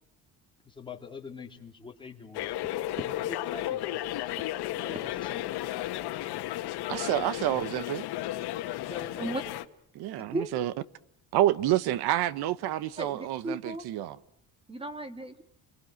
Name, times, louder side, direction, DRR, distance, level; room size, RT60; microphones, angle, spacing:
voice 1, 0.6-2.5 3.0-3.9 4.8-5.4 8.9-9.1, left 5 dB, 15° left, 3.0 m, -44 dB
sound 1, 2.3-9.7, left 14 dB, 90° left, 1.4 m, -34 dB
voice 2, 6.9-8.0 9.9-10.7 11.3-14.2, right 13 dB, 80° right, 1.0 m, -28 dB
voice 3, 13.0-13.8 14.7-15.4, right 1 dB, 15° right, 1.7 m, -35 dB
29.5 x 22.5 x 7.7 m
cardioid pair, 175°, 38 cm